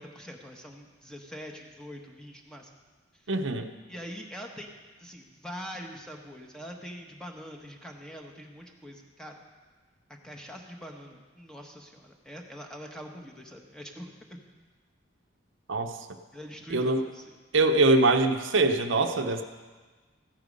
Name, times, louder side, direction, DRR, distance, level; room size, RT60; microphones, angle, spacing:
voice 1, 0.0-2.7 3.9-4.7 5.0-9.4 10.1-14.4 16.3-17.3, equal, 5° left, 1 dB, 1.1 m, -43 dB
voice 2, 3.3-3.7 15.7-16.0 16.7-17.0 17.5-19.4, right 2 dB, 75° right, 7 dB, 0.8 m, -23 dB
14.5 x 10.5 x 5.3 m, 1.4 s
head